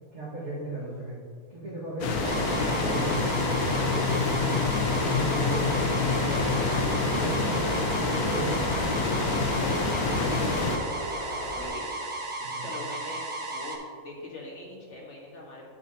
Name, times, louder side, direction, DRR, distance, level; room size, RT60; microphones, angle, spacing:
voice 1, 0.1-1.1 1.5-3.2 3.5-4.5 4.8-5.6 5.9-6.6 7.0-8.8 12.4-12.7, right 2 dB, 55° right, -11 dB, 2.2 m, -36 dB
sound 1, 2.0-10.8, left 4 dB, 90° left, 1.3 m, -27 dB
Bird, 2.2-11.7, equal, 20° left, 2.0 m, -37 dB
sound 2, 2.2-13.8, right 2 dB, 25° right, 0.9 m, -35 dB
voice 2, 9.6-10.9 11.5-12.1 12.6-13.8 14.0-15.7, left 2 dB, 55° left, -3 dB, 1.8 m, -41 dB
9.2 x 7.2 x 2.9 m, 2.1 s
omnidirectional pair, 1.5 m